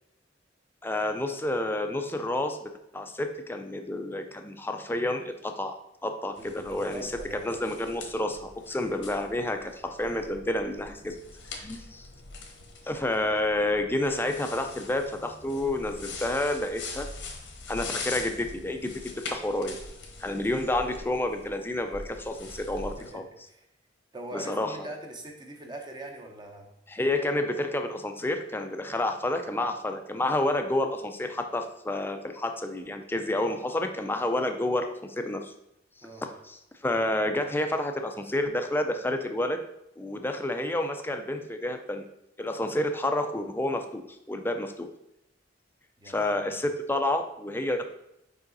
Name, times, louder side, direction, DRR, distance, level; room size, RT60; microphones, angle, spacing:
voice 1, 0.8-7.1 7.4-11.2 11.6-12.1 12.9-17.1 17.7-19.8 20.2-23.2 24.3-24.8 26.9-35.5 36.2-36.6 36.8-39.6 40.0-42.0 42.4-44.9 46.1-47.9, left 1 dB, 10° left, 6 dB, 0.5 m, -29 dB
sound 1, 6.4-23.1, left 3 dB, 85° left, 1.2 m, -43 dB
voice 2, 6.4-7.6 23.0-23.7 24.1-26.7 36.0-36.3 46.0-46.4, right 1 dB, 25° right, 2 dB, 0.8 m, -42 dB
5.3 x 4.8 x 4.0 m, 0.81 s
head